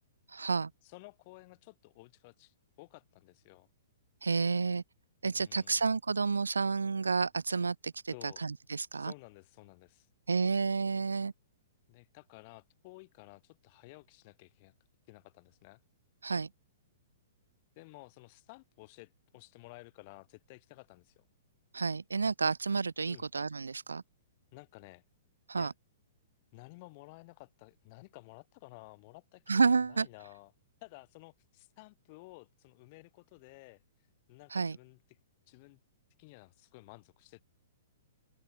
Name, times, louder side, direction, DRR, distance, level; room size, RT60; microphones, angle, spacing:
voice 1, 0.3-0.7 4.2-4.8 5.2-9.1 10.3-11.3 16.2-16.5 21.7-24.0 25.5-25.7 29.5-30.1 34.5-34.8, right 4 dB, 80° right, 1.5 m, -30 dB
voice 2, 0.8-3.7 5.3-5.8 8.1-8.4 8.9-10.1 11.9-14.7 15.1-15.8 17.8-21.3 23.1-23.3 24.5-25.0 25.6-25.7 26.5-29.6 29.9-30.5 30.8-33.8 34.3-35.0 35.5-35.8 36.2-37.4, left 26 dB, 40° left, 6.0 m, -54 dB
open air
figure-of-eight pair, 115°, 0 cm